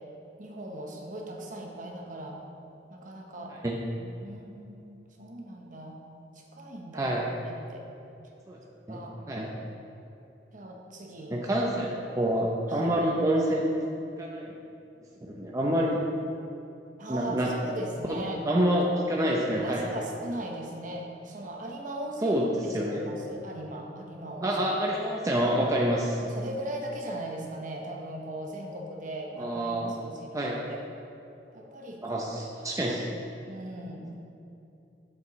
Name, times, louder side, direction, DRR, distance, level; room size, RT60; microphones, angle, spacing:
voice 1, 0.4-2.4 2.9-3.6 4.0-6.0 6.3-7.1 7.4-7.9 8.9-9.2 10.5-11.4 12.6-12.9 17.0-17.4 17.6-18.4 18.7-18.8 19.6-22.4 22.7-24.6 26.2-30.8 31.5-32.3 32.8-33.0 33.4-34.2, right 1 dB, 50° right, 1 dB, 1.0 m, -39 dB
voice 2, 6.9-7.3 8.5-8.6 8.9-9.0 9.3-9.5 11.3-13.7 14.2-14.4 15.3-16.0 17.1-17.5 18.1-18.2 18.4-19.9 22.2-22.4 22.7-23.0 24.4-26.2 29.4-29.9 30.3-30.6 32.0-33.0, right 1 dB, 20° right, -3 dB, 0.6 m, -27 dB
8.4 x 7.5 x 3.1 m, 2.7 s
head